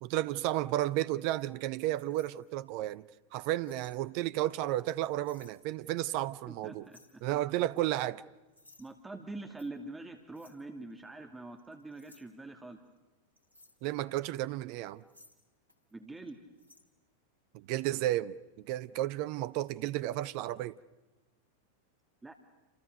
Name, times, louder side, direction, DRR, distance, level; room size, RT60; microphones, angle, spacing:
voice 1, 0.0-3.1 3.3-6.9 7.2-8.2 13.8-15.0 17.5-20.8, right 14 dB, 45° right, 0.8 m, -33 dB
sound 1, 1.7-2.9 3.6-4.0 4.4-5.6 6.1-6.3 6.8-7.2 7.8-8.0 8.5-8.9 9.6-9.7 10.3-10.6 11.0-11.1 11.6-12.2 13.4-13.8 14.6-15.9 16.2-16.3 16.6-16.8, left 2 dB, 85° right, 3.6 m, -61 dB
voice 2, 6.5-7.2 8.8-12.8 15.9-16.4 22.2-22.3, right 2 dB, 10° right, 2.2 m, -44 dB
29.0 x 27.5 x 6.6 m
figure-of-eight pair, 90°, 0 cm